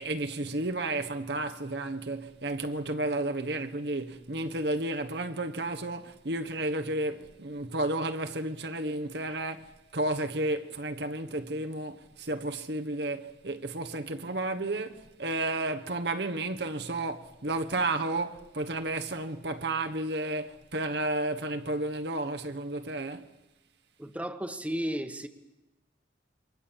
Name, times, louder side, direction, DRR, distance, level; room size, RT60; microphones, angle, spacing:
voice 1, 0.0-23.3, right 2 dB, 65° right, 1.3 m, -32 dB
voice 2, 24.0-25.3, equal, 10° right, 1.3 m, -33 dB
28.0 x 24.0 x 7.4 m
head